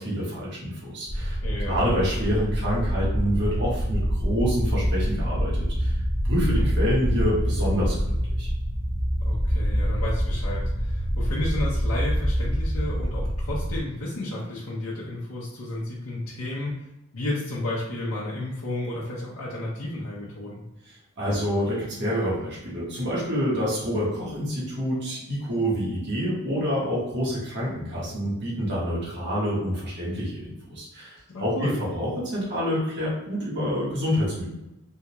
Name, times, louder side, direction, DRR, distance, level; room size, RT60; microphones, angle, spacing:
voice 1, 0.0-5.9 6.3-8.5 20.9-34.5, equal, 55° right, -7 dB, 1.2 m, -27 dB
sound 1, 1.1-13.8, equal, 20° left, 0.8 m, -26 dB
voice 2, 1.4-1.8 6.4-6.7 9.2-16.7 17.1-20.6 31.3-31.7, left 1 dB, 85° left, -7 dB, 0.7 m, -32 dB
3.6 x 2.3 x 2.9 m, 0.91 s
head